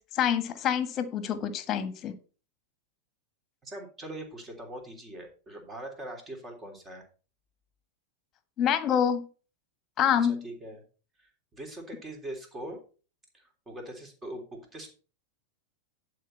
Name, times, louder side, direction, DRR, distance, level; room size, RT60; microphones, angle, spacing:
voice 1, 0.0-2.1 8.6-9.3 10.0-10.4, left 8 dB, 30° left, 12 dB, 1.4 m, -26 dB
voice 2, 3.6-7.0 10.2-10.8 11.2-12.8 13.3-14.9, right 1 dB, 20° right, 3 dB, 3.2 m, -42 dB
11.0 x 4.8 x 5.6 m, 0.36 s
figure-of-eight pair, 90°, 0 cm